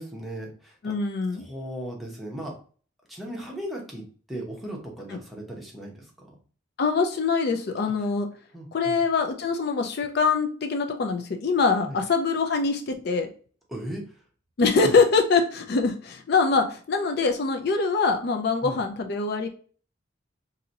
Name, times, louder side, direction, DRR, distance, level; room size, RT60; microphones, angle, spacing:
voice 1, 0.0-0.9 1.3-2.6 3.1-6.4 8.5-9.0 11.9-12.0 13.7-14.2 14.8-15.0 18.6-18.8, equal, ahead, -2 dB, 0.8 m, -37 dB
voice 2, 0.8-1.5 6.8-8.3 8.7-13.3 14.6-19.5, left 4 dB, 55° left, 5 dB, 0.4 m, -24 dB
2.8 x 2.6 x 3.9 m, 0.41 s
head